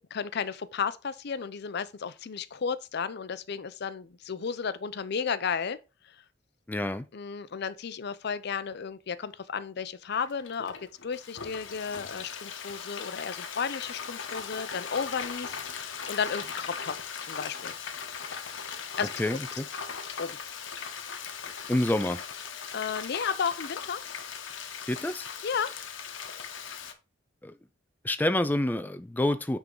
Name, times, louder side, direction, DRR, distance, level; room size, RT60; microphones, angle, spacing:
voice 1, 0.1-5.8 7.1-10.7 11.0-17.0 17.3-17.7 19.0-19.2 20.2-20.3 22.7-24.0 25.4-25.7, left 6 dB, 60° left, 0.5 m, -33 dB
voice 2, 6.7-7.1 19.2-19.7 21.7-22.2 24.9-25.3 27.4-27.5 28.0-29.6, left 1 dB, 10° left, 0.3 m, -27 dB
Frying (food), 10.3-26.9, left 6 dB, 85° left, 1.0 m, -39 dB
8.9 x 3.7 x 3.8 m
head